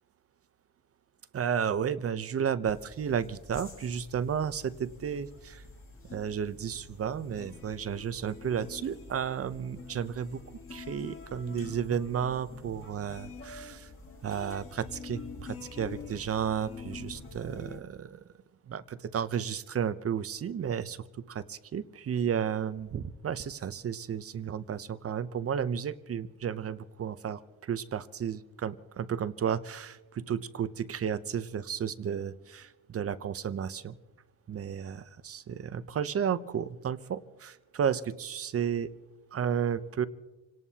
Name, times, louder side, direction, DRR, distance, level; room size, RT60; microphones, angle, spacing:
voice 1, 1.3-5.6 6.1-10.4 10.7-13.9 14.2-18.2 18.7-34.0 34.5-38.9 39.3-40.1, right 8 dB, 30° right, 14 dB, 0.7 m, -33 dB
sound 1, 2.7-17.8, left 4 dB, 25° left, 2.4 m, -46 dB
27.5 x 18.0 x 2.8 m, 1.2 s
cardioid pair, 120°, 46 cm